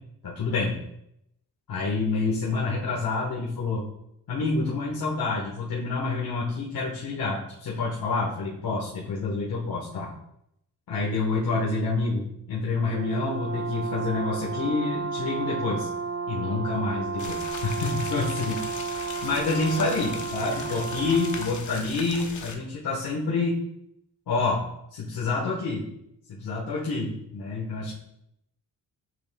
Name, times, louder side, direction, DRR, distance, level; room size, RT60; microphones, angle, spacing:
voice 1, 0.2-0.8 1.7-3.9 4.3-10.1 10.9-15.9 16.3-18.6 19.2-23.6 24.3-24.6 24.9-25.9 26.3-27.9, left 3 dB, 70° left, -6 dB, 1.5 m, -28 dB
Brass instrument, 12.9-21.6, right 5 dB, 40° right, 0.7 m, -32 dB
sound 1, 17.2-22.6, left 5 dB, 50° left, 0.9 m, -39 dB
7.6 x 6.2 x 2.3 m, 0.77 s
cardioid pair, 125°, 37 cm